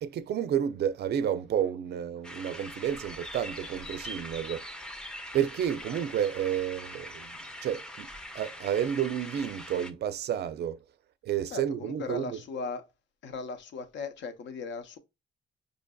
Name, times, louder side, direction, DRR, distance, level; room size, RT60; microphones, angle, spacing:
voice 1, 0.0-4.7 5.3-8.1 8.3-10.8 11.2-12.4, right 9 dB, 55° right, 0.4 m, -30 dB
sound 1, 2.2-9.9, equal, 5° left, 0.5 m, -42 dB
voice 2, 11.5-12.8 13.2-15.0, left 4 dB, 65° left, 0.7 m, -37 dB
5.0 x 2.6 x 2.2 m
cardioid pair, 90°, 20 cm